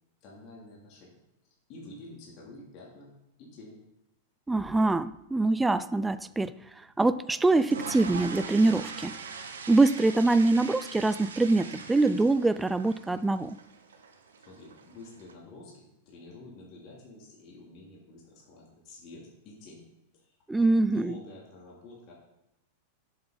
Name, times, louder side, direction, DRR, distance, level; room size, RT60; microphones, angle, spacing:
voice 1, 0.2-1.2 1.7-3.8 14.5-19.9 20.1-22.1, left 2 dB, 50° left, -3 dB, 3.1 m, -49 dB
voice 2, 4.5-9.2 9.7-13.6 20.5-21.1, right 2 dB, 10° right, 14 dB, 0.4 m, -24 dB
sound 1, 7.3-15.3, right 5 dB, 80° right, 1.1 m, -42 dB
8.0 x 7.1 x 5.1 m, 0.92 s
hypercardioid pair, 100°, 0 cm